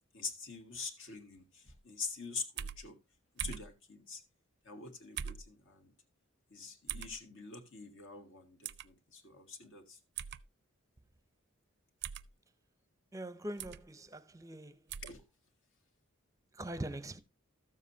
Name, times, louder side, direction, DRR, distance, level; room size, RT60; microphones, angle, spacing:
voice 1, 0.1-3.0 3.4-4.2 4.7-5.9 6.5-10.0 15.0-15.2, left 4 dB, 60° left, 1.8 m, -45 dB
sound 1, 2.6-2.8 3.4-3.7 5.2-5.5 6.9-7.1 8.6-8.9 10.2-10.4 12.0-12.3 13.6-13.8 14.9-15.2, right 9 dB, 50° right, 0.4 m, -41 dB
voice 2, 13.1-14.7 16.6-17.2, right 1 dB, 15° right, 0.7 m, -42 dB
13.5 x 7.3 x 2.7 m
head